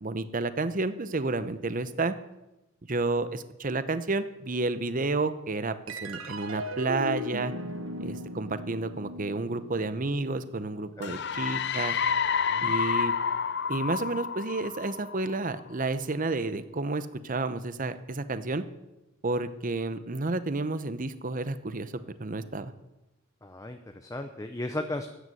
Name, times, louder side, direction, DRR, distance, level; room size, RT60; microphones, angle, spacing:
voice 1, 0.0-2.1 2.9-7.5 8.0-12.0 12.6-13.1 13.7-18.6 19.2-21.9 22.2-22.7, right 3 dB, 40° right, 13 dB, 0.8 m, -31 dB
sound 1, 5.9-12.6, equal, 75° right, 1.2 m, -38 dB
sound 2, 11.0-15.6, left 6 dB, 55° left, 0.6 m, -29 dB
voice 2, 23.4-25.1, left 1 dB, 15° left, 6 dB, 0.7 m, -36 dB
13.0 x 9.6 x 7.8 m, 0.96 s
head